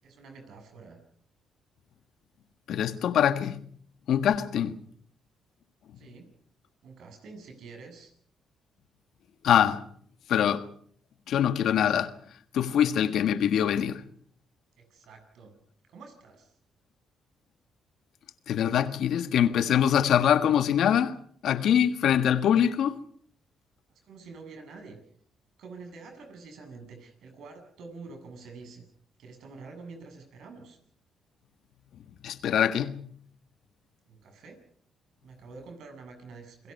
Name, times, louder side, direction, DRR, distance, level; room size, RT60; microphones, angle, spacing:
voice 1, 0.0-1.0 6.0-6.3 6.8-8.1 14.8-15.6 15.9-16.6 24.0-25.0 25.6-28.8 29.2-30.8 34.1-34.6 35.2-36.7, right 4 dB, 75° right, 7.9 m, -47 dB
voice 2, 2.7-3.6 4.1-4.8 9.4-9.8 10.3-10.7 11.3-12.1 12.5-14.0 18.5-21.2 21.4-23.0 32.2-33.1, left 9 dB, 75° left, 1.6 m, -24 dB
29.5 x 21.5 x 5.5 m
cardioid pair, 90°, 0 cm